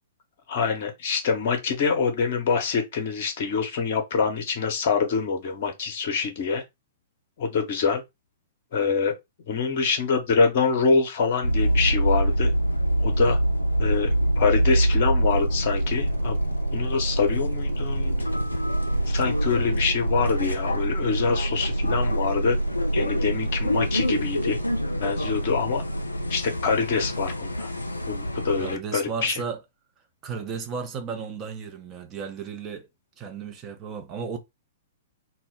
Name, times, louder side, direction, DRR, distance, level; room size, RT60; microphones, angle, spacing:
voice 1, 0.5-6.6 7.4-8.0 8.7-9.1 9.5-12.5 13.0-13.4 13.8-18.1 19.1-22.6 22.9-24.6 25.0-25.8 26.3-27.7 28.1-29.3, left 5 dB, 45° left, 0.6 m, -25 dB
sound 1, 11.4-28.8, right 1 dB, 85° left, 0.3 m, -25 dB
Drill, 15.2-27.2, right 4 dB, 70° right, 0.6 m, -45 dB
voice 2, 28.6-29.6 30.2-32.9 33.2-34.4, right 5 dB, 25° right, 0.5 m, -34 dB
2.2 x 2.0 x 3.5 m
figure-of-eight pair, 110°, 0 cm